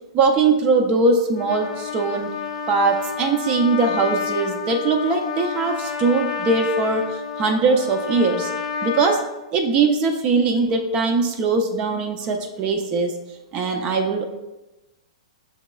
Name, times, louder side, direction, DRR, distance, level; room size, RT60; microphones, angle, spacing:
voice 1, 0.1-2.3 2.7-8.5 8.8-9.2 9.5-13.1 13.5-14.3, right 4 dB, 30° right, 4 dB, 0.4 m, -21 dB
Trumpet, 1.3-9.3, left 7 dB, 75° left, 0.5 m, -29 dB
7.2 x 3.0 x 2.3 m, 1.0 s
hypercardioid pair, 135°, 4 cm